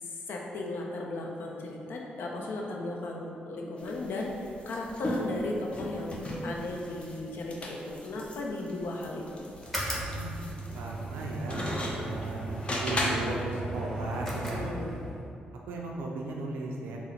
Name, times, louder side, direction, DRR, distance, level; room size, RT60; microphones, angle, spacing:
voice 1, 0.0-9.4 14.4-14.9, left 2 dB, 75° left, -1 dB, 0.5 m, -36 dB
sound 1, 3.8-13.4, left 1 dB, 35° left, 0.6 m, -37 dB
sound 2, 9.6-15.2, right 2 dB, 10° left, 0.9 m, -36 dB
voice 2, 10.1-10.4 10.7-11.6 12.0-14.7 15.7-17.0, right 2 dB, 90° right, -1 dB, 0.4 m, -36 dB
3.7 x 2.0 x 4.2 m, 2.5 s
supercardioid pair, 60°, 3 cm